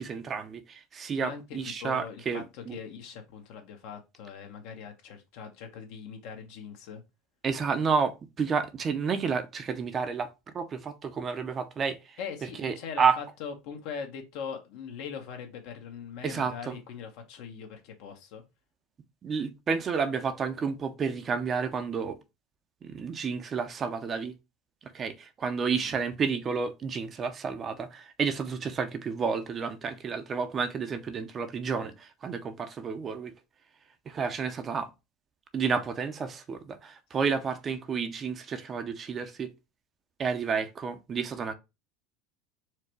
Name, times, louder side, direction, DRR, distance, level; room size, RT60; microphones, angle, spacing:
voice 1, 0.0-2.8 7.4-10.3 10.5-12.2 12.6-13.1 16.2-16.8 19.2-22.2 22.8-24.3 24.8-33.3 34.1-34.9 35.5-39.5 40.2-41.5, right 5 dB, 30° right, 0.6 m, -30 dB
voice 2, 1.2-7.0 12.2-18.4 25.7-25.9 37.1-37.3, left 6 dB, 65° left, 1.2 m, -41 dB
4.6 x 2.3 x 4.4 m
supercardioid pair, 115°, 0 cm